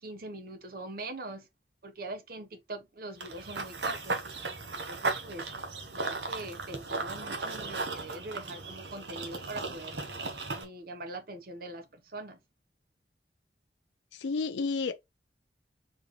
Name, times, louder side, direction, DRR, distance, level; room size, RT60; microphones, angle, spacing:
voice 1, 0.0-1.5 1.8-4.2 4.7-5.5 5.9-10.0 10.5-12.4, right 2 dB, 55° right, 0.9 m, -42 dB
Run / Bird vocalization bird call bird song, 3.2-10.6, right 3 dB, 75° right, 1.2 m, -36 dB
voice 2, 14.1-14.9, left 4 dB, 80° left, 0.5 m, -31 dB
4.5 x 3.6 x 3.1 m
head